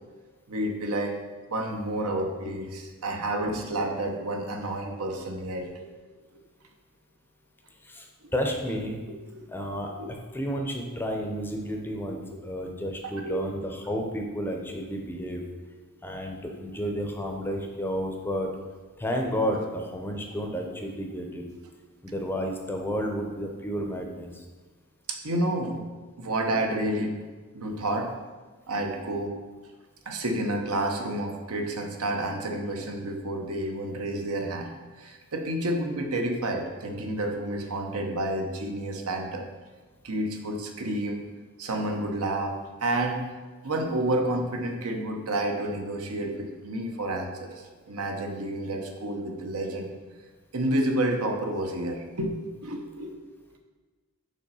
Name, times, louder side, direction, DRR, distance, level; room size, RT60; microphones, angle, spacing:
voice 1, 0.5-1.2 1.5-5.9 8.2-8.3 9.3-9.5 10.0-10.1 13.0-13.4 25.1-25.9 26.2-27.2 27.5-28.1 28.7-29.3 30.1-39.5 40.0-41.2 41.6-43.3 43.6-49.9 50.5-53.1, right 1 dB, 75° right, 3 dB, 0.9 m, -30 dB
voice 2, 8.3-9.0 9.5-9.9 10.3-15.4 16.0-18.5 19.0-21.4 22.0-24.3, equal, 10° left, 2 dB, 0.6 m, -31 dB
5.3 x 4.2 x 5.4 m, 1.3 s
head